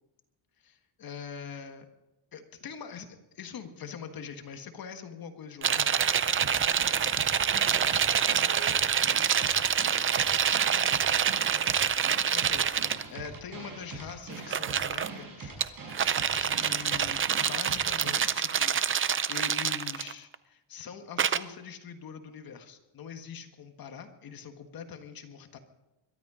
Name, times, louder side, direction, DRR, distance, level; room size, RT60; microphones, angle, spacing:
voice 1, 0.6-1.9 2.3-6.1 12.1-16.1 16.4-18.8 19.3-25.6, left 6 dB, 50° left, 7 dB, 1.7 m, -43 dB
sound 1, 5.6-13.0 14.4-15.1 15.6-20.4 21.2-21.4, right 8 dB, 25° right, 0.5 m, -26 dB
sound 2, 6.4-18.4, right 4 dB, 45° right, 6.8 m, -43 dB
voice 2, 7.5-9.4 9.8-11.6, right 3 dB, 65° right, 3 dB, 5.4 m, -49 dB
22.0 x 13.0 x 5.0 m, 0.98 s
cardioid pair, 145°, 46 cm